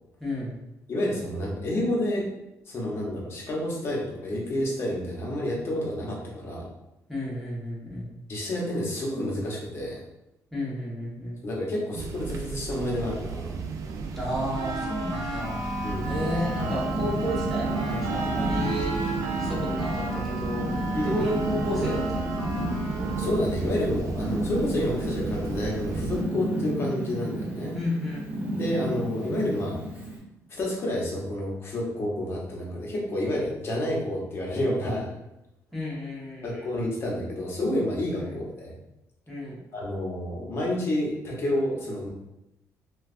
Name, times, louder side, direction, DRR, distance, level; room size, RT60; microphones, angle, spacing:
voice 1, 0.2-0.5 7.1-8.1 10.5-11.4 14.1-15.6 16.1-22.5 27.7-28.3 35.7-36.7 38.2-38.3 39.3-39.6, left 1 dB, ahead, -7 dB, 1.1 m, -32 dB
voice 2, 0.9-2.2 2.7-6.7 8.3-10.0 11.4-13.6 15.8-16.1 20.9-21.3 23.2-27.8 28.6-29.8 30.5-35.2 36.4-38.8 39.7-42.1, left 1 dB, 40° left, -3 dB, 0.9 m, -29 dB
sound 1, 11.9-26.2, right 5 dB, 60° right, 0.3 m, -35 dB
sound 2, 14.5-23.4, right 2 dB, 85° right, 0.7 m, -33 dB
Purr, 15.4-30.2, equal, 20° right, 0.8 m, -32 dB
3.0 x 2.3 x 2.5 m, 0.90 s
cardioid pair, 130°, 6 cm